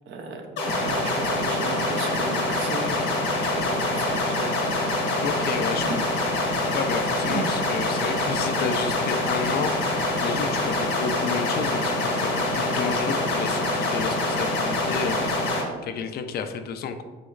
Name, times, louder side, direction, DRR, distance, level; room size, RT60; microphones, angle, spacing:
voice 1, 0.1-3.0 3.4-4.5 5.7-6.0 7.3-7.5, right 4 dB, 80° right, 3 dB, 0.6 m, -34 dB
sound 1, 0.6-15.6, left 2 dB, 75° left, 1.1 m, -25 dB
voice 2, 5.2-5.9 6.1-6.2 6.7-15.3 15.8-17.0, left 6 dB, 55° left, 8 dB, 0.4 m, -31 dB
5.0 x 3.8 x 2.4 m, 1.4 s
cardioid pair, 150°, 19 cm